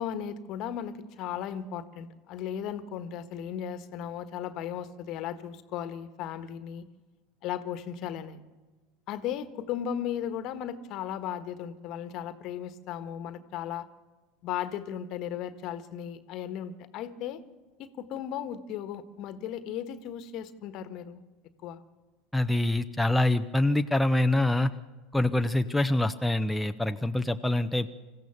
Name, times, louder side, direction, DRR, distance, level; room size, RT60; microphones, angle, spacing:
voice 1, 0.0-6.9 7.4-8.4 9.1-13.9 14.4-17.4 17.8-21.2 21.6-21.8, left 9 dB, 50° left, 11 dB, 1.4 m, -36 dB
voice 2, 22.3-24.7 25.1-27.9, left 1 dB, 5° left, 6 dB, 0.8 m, -25 dB
26.5 x 15.0 x 7.1 m, 1.3 s
hypercardioid pair, 75°, 0 cm